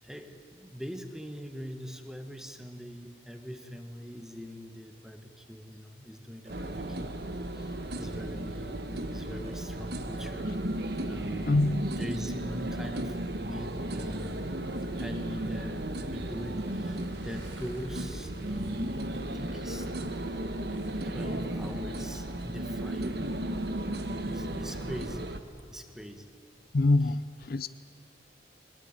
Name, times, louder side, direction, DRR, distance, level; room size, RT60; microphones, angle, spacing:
voice 1, 0.0-7.1 7.5-7.7 8.0-10.5 11.0-11.6 12.0-14.6 14.9-15.8 16.1-19.9 21.0-23.2 24.3-25.3 25.7-26.3, equal, 5° right, 1.4 m, -42 dB
sound 1, 6.4-6.8 7.7-8.0 9.4-9.7 10.8-11.0, right 1 dB, 35° right, 1.9 m, -54 dB
sound 2, 6.5-25.4, right 1 dB, 55° right, 1.3 m, -35 dB
voice 2, 11.5-11.8 26.7-27.7, left 2 dB, 50° left, 0.5 m, -25 dB
Motorcycle / Engine, 14.6-22.2, right 1 dB, 70° right, 3.4 m, -52 dB
23.5 x 20.5 x 8.9 m
head